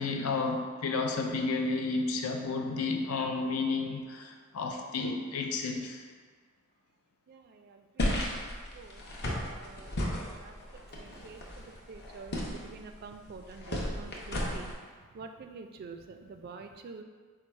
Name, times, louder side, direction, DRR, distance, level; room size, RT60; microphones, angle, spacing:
voice 1, 0.0-6.0, left 3 dB, 85° left, 3 dB, 0.5 m, -32 dB
voice 2, 7.3-8.5 8.7-9.0 9.4-14.7 15.1-17.0, right 4 dB, 45° right, 7 dB, 0.3 m, -48 dB
sound 1, 8.0-14.7, left 1 dB, 50° left, 0.7 m, -35 dB
4.6 x 2.3 x 4.3 m, 1.5 s
head